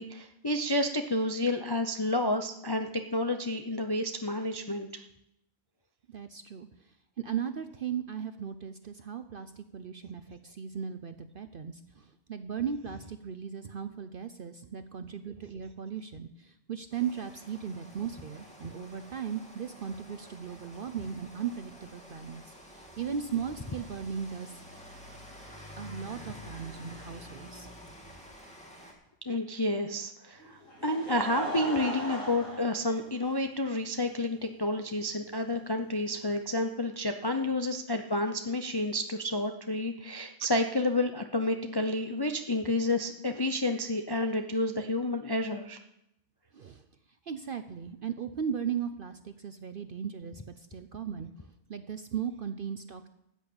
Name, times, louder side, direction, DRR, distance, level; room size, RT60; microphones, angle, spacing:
voice 1, 0.0-5.0 29.3-45.8, left 1 dB, 35° left, 5 dB, 0.4 m, -30 dB
voice 2, 6.1-24.6 25.8-27.7 46.5-46.9 47.2-51.3 51.7-53.1, right 7 dB, 55° right, 9 dB, 0.6 m, -37 dB
Rain, 16.9-28.9, equal, 5° left, 2.2 m, -49 dB
Laughter, 30.4-33.6 34.4-34.5 36.0-36.1, right 1 dB, 65° left, 4.8 m, -38 dB
13.5 x 6.4 x 8.6 m, 0.82 s
omnidirectional pair, 1.5 m